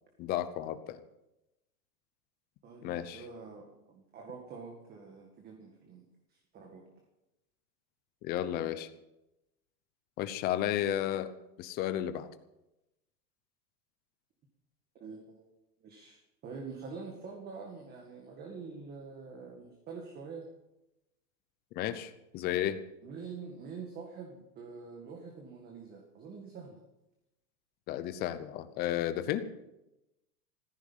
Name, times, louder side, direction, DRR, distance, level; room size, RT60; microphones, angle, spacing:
voice 1, 0.2-1.0 2.8-3.2 8.2-8.9 10.2-11.3 11.6-12.3 21.7-22.8 27.9-29.4, left 12 dB, 20° left, 12 dB, 0.7 m, -33 dB
voice 2, 2.6-6.9 15.0-15.5 15.8-20.5 23.0-26.8, right 5 dB, 20° right, 1 dB, 1.9 m, -46 dB
15.0 x 14.5 x 5.6 m, 0.92 s
supercardioid pair, 155°, 48 cm